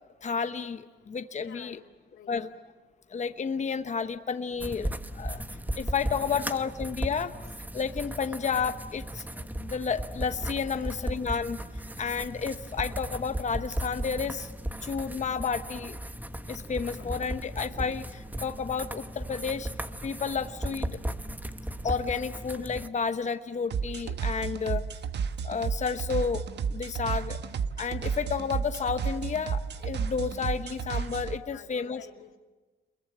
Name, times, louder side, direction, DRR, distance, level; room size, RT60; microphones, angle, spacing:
voice 1, 0.2-1.8 2.3-2.5 3.1-5.4 5.7-7.3 7.7-9.3 9.6-11.6 12.0-14.5 14.8-16.0 16.5-19.7 20.0-21.0 21.8-24.9 25.4-26.4 26.7-27.4 27.8-32.0, left 6 dB, 35° left, 9 dB, 1.0 m, -31 dB
voice 2, 1.4-2.5 6.3-6.7 10.7-11.1 17.0-17.1 31.5-32.4, left 9 dB, 85° left, 4 dB, 2.6 m, -51 dB
sound 1, 4.6-22.9, right 1 dB, 10° right, 1.2 m, -36 dB
sound 2, 23.7-31.4, right 6 dB, 60° right, 1.3 m, -32 dB
27.5 x 22.5 x 8.7 m, 1.3 s
cardioid pair, 90°, 20 cm